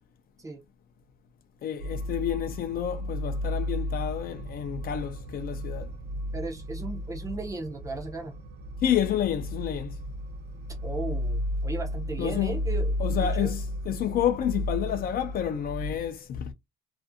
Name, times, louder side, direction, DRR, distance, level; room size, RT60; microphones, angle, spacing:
voice 1, 1.6-5.9 8.8-10.0 12.2-12.6 13.0-16.5, left 10 dB, 50° left, 0.4 m, -29 dB
sound 1, 1.8-15.9, equal, 55° right, 0.7 m, -33 dB
voice 2, 6.3-8.4 10.8-12.9 13.2-13.5, right 3 dB, 15° right, 0.5 m, -36 dB
2.5 x 2.5 x 2.5 m
cardioid pair, 170°, 20 cm